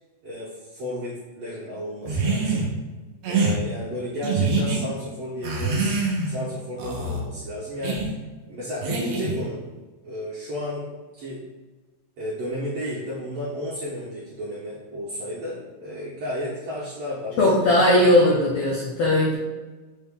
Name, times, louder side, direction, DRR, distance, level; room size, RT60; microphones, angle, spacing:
voice 1, 0.2-2.7 3.3-6.0 6.3-8.2 8.5-9.6 10.0-10.8 11.2-11.4 12.2-18.7, left 1 dB, 75° right, -8 dB, 1.5 m, -33 dB
sound 1, 2.1-2.7 3.2-3.6 4.2-4.8 5.4-6.4 6.8-7.2 7.8-8.1 8.8-9.4, right 3 dB, 90° right, 1.4 m, -24 dB
voice 2, 17.4-19.4, left 1 dB, 85° left, -4 dB, 1.5 m, -18 dB
6.2 x 2.2 x 3.4 m, 1.3 s
omnidirectional pair, 3.9 m